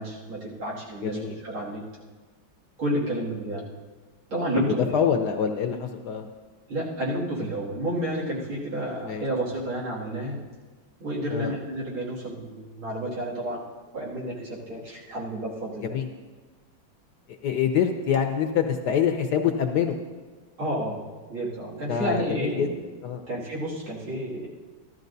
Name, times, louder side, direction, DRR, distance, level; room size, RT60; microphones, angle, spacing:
voice 1, 0.0-1.8 2.8-3.6 4.3-5.0 6.7-10.4 11.0-13.7 13.9-16.0 20.6-21.0 21.3-22.7 23.3-24.5, right 1 dB, 90° right, -6 dB, 3.2 m, -30 dB
voice 2, 1.0-1.4 4.7-6.3 9.0-9.2 11.3-11.5 15.8-16.1 17.3-20.0 21.9-22.7 23.0-23.2, left 8 dB, 70° left, 6 dB, 1.0 m, -25 dB
14.0 x 12.5 x 2.7 m, 1.4 s
omnidirectional pair, 2.2 m